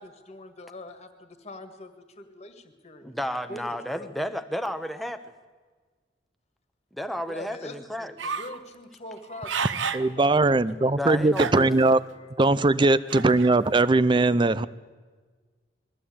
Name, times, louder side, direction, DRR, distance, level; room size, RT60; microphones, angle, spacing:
voice 1, 0.0-3.1 3.5-4.1 7.3-9.7 10.0-10.3 10.7-10.9 11.7-11.8, left 1 dB, 35° left, 7 dB, 1.9 m, -43 dB
voice 2, 3.0-5.2 6.9-8.2 11.0-11.7, equal, ahead, 8 dB, 1.0 m, -32 dB
sound 1, 8.2-8.6 9.2-10.1 10.6-10.7 11.3-11.9 13.1-13.5, right 6 dB, 85° right, 0.8 m, -31 dB
voice 3, 9.9-12.0 12.4-14.7, right 2 dB, 25° right, 17 dB, 0.5 m, -20 dB
21.0 x 14.5 x 8.7 m, 1.4 s
head